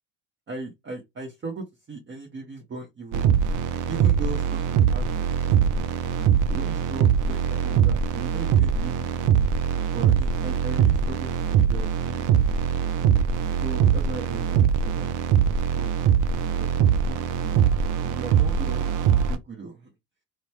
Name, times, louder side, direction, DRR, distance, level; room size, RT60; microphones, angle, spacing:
voice 1, 0.5-3.3 3.9-5.9 6.2-9.2 9.9-12.8 13.6-16.2 16.6-16.7 17.0-17.5 17.9-19.9, right 3 dB, 35° right, 1.0 m, -38 dB
sound 1, 3.1-19.4, right 8 dB, 60° right, 0.6 m, -22 dB
3.0 x 2.2 x 2.8 m
supercardioid pair, 70°, 35 cm